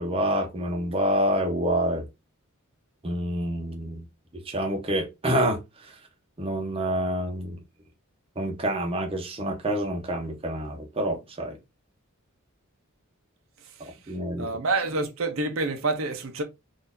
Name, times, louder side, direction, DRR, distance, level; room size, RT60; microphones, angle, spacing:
voice 1, 0.0-2.1 3.0-4.1 4.3-5.6 6.4-7.6 8.4-11.6 13.8-14.5, equal, 25° right, 0.8 m, -27 dB
voice 2, 14.4-16.4, right 3 dB, 65° right, 0.8 m, -27 dB
3.9 x 2.7 x 2.6 m
head